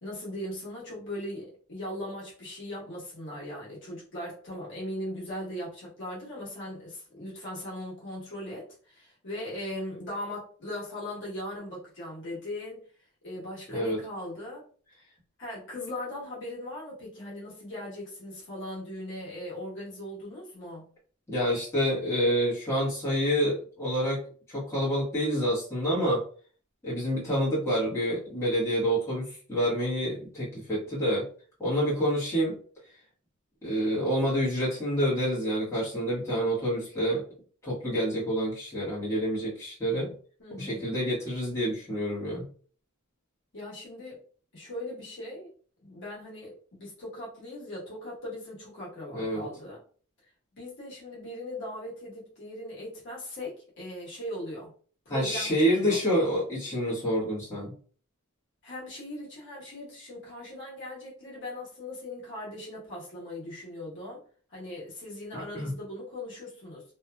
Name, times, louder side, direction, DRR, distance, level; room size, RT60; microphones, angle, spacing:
voice 1, 0.0-12.8 13.2-14.6 15.4-20.9 40.4-40.9 43.5-44.2 44.5-45.5 45.8-49.8 50.5-54.7 55.0-56.0 58.6-64.2 64.5-66.8, left 1 dB, 60° left, -6 dB, 1.2 m, -39 dB
voice 2, 13.7-14.0 21.3-24.2 24.5-26.2 26.8-31.2 31.6-32.6 33.6-37.2 37.6-40.1 40.6-42.5 49.1-49.5 55.1-57.7 65.3-65.7, equal, 15° left, -9 dB, 1.2 m, -28 dB
2.8 x 2.4 x 2.2 m, 0.43 s
head